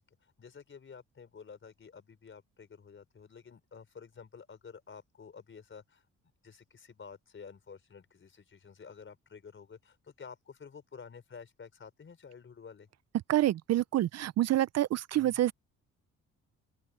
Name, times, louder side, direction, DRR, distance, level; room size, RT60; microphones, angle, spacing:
voice 1, 0.2-6.0 6.4-12.9 15.1-15.4, left 6 dB, 40° left, 4.9 m, -51 dB
voice 2, 13.3-15.5, right 14 dB, 55° right, 0.5 m, -27 dB
open air
cardioid pair, 90°, 30 cm